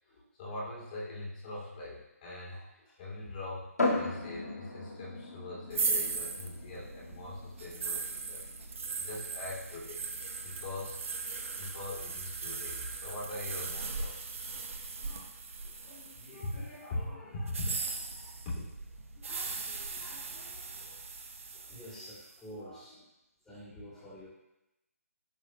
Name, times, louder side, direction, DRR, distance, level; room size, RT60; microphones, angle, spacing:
voice 1, 0.1-3.7 3.9-10.0 10.4-11.0 11.6-14.3 15.0-15.3 15.6-18.3 19.1-21.0 21.5-22.1 22.5-22.8 23.9-24.1, left 2 dB, 35° left, -5 dB, 2.6 m, -43 dB
sound 1, 3.8-17.3, left 2 dB, 80° left, 1.8 m, -40 dB
sound 2, 5.7-16.7 17.4-22.3, right 4 dB, 55° right, 0.9 m, -38 dB
voice 2, 21.7-23.0 23.4-24.3, equal, 5° left, -9 dB, 2.5 m, -48 dB
11.0 x 4.7 x 2.2 m, 0.91 s
figure-of-eight pair, 150°, 8 cm